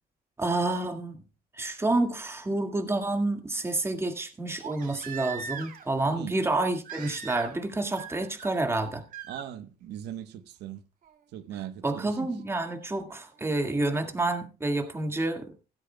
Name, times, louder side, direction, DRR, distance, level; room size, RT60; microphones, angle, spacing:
voice 1, 0.4-1.2 1.5-9.0 11.8-15.5, right 2 dB, 15° right, 2.0 m, -29 dB
Crying sobbing, 1.9-2.0 4.6-5.9 6.8-7.7 8.0-8.5 9.1-9.4 11.0-11.1, right 6 dB, 55° right, 2.4 m, -40 dB
voice 2, 9.3-10.8 11.3-12.3, right 11 dB, 80° right, 1.1 m, -39 dB
15.5 x 13.0 x 2.3 m
cardioid pair, 110°, 17 cm